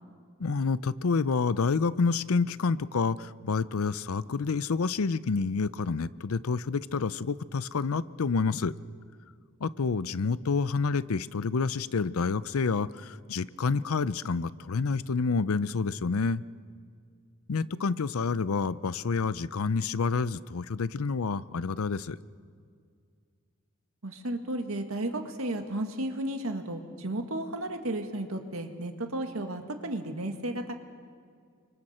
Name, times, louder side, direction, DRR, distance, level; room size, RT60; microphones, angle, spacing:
voice 1, 0.4-8.7 9.6-16.4 17.5-22.2, left 4 dB, 85° left, 17 dB, 0.6 m, -28 dB
voice 2, 24.0-30.7, right 1 dB, 80° right, 5 dB, 1.9 m, -33 dB
30.0 x 25.0 x 4.4 m, 2.2 s
head